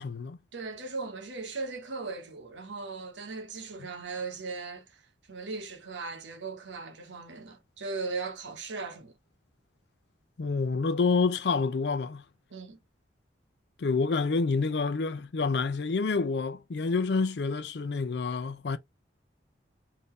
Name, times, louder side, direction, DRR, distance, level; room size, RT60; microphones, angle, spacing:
voice 1, 0.0-0.4 10.4-12.2 13.8-18.8, left 4 dB, 65° left, 0.5 m, -28 dB
voice 2, 0.5-5.0 5.3-9.1 12.5-12.8, right 4 dB, 85° right, 0.9 m, -38 dB
3.6 x 2.7 x 3.0 m
head